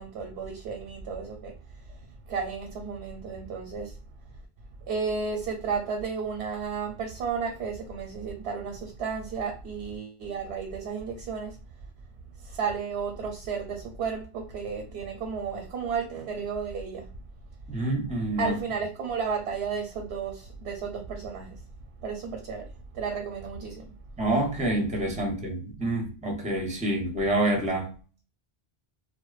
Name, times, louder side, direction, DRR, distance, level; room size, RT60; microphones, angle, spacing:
voice 1, 0.0-4.0 4.2-4.3 4.8-11.6 12.4-17.1 18.4-21.7 22.0-23.9, right 5 dB, 80° right, 0.9 m, -33 dB
voice 2, 17.7-18.5 24.2-27.9, right 1 dB, 10° right, 0.5 m, -27 dB
2.5 x 2.1 x 2.3 m
omnidirectional pair, 1.1 m